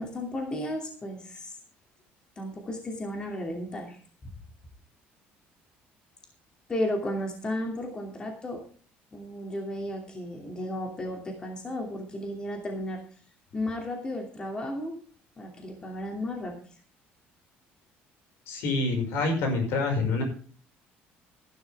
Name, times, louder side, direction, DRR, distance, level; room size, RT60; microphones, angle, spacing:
voice 1, 0.0-1.6 2.4-4.0 6.7-8.6 9.1-13.0 13.5-15.0 15.4-16.6, left 1 dB, 20° left, 2 dB, 2.8 m, -34 dB
voice 2, 18.5-20.2, left 3 dB, 75° left, 4 dB, 5.8 m, -26 dB
14.5 x 11.5 x 3.6 m, 0.42 s
cardioid pair, 155°, 4 cm